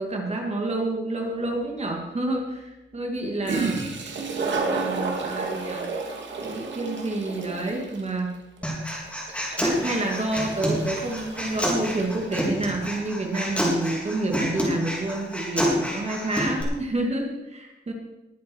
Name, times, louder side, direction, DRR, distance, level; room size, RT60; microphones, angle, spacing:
voice 1, 0.0-3.8 4.3-5.9 6.4-8.3 9.6-17.9, right 2 dB, 35° right, 1 dB, 2.4 m, -29 dB
Toilet flush, 1.4-1.5 3.2-3.3 3.4-12.8, right 4 dB, 75° right, 2.4 m, -32 dB
Human voice, 8.6-16.6, equal, 5° left, 3.6 m, -28 dB
20.5 x 8.7 x 4.7 m, 0.99 s
wide cardioid pair, 150°, 19 cm